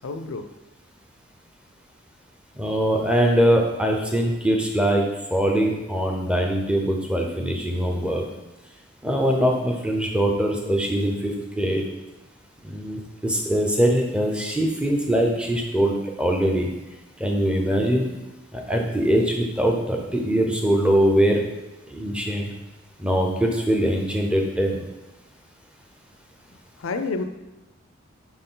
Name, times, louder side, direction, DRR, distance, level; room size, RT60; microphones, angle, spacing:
voice 1, 0.0-0.5 26.8-27.2, left 3 dB, 85° left, 8 dB, 0.5 m, -28 dB
voice 2, 2.6-5.0 5.3-8.2 9.0-11.8 12.6-16.7 17.2-18.1 18.5-21.4 21.9-22.5 23.0-24.8, equal, 5° right, 1 dB, 0.7 m, -22 dB
5.9 x 4.4 x 3.8 m, 1.0 s
head